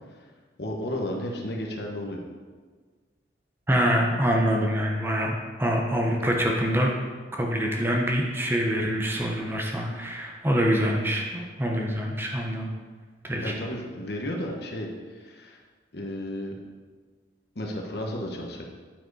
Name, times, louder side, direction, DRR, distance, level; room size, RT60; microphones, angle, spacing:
voice 1, 0.6-2.2 11.2-11.3 13.4-15.6 15.9-16.5 17.5-18.6, left 1 dB, 60° left, 0 dB, 1.2 m, -33 dB
voice 2, 3.7-5.3 5.6-6.9 7.4-12.7 13.2-13.5, equal, 10° right, 0 dB, 0.8 m, -25 dB
9.1 x 5.0 x 4.7 m, 1.5 s
head